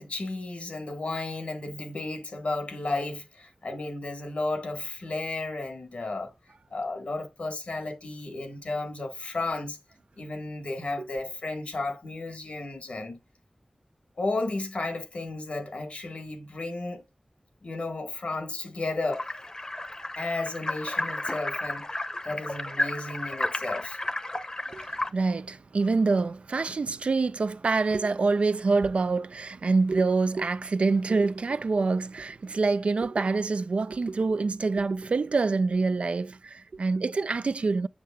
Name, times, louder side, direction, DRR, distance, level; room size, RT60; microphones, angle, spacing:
voice 1, 0.0-6.3 6.7-9.8 10.2-13.2 14.2-17.0 17.6-19.3 20.2-21.9 22.2-24.0, left 2 dB, 85° left, 1.3 m, -33 dB
sound 1, 19.1-25.1, left 1 dB, 35° left, 0.7 m, -32 dB
voice 2, 25.1-37.9, right 3 dB, 75° right, 0.4 m, -26 dB
8.0 x 6.6 x 2.2 m
wide cardioid pair, 65°, 2 cm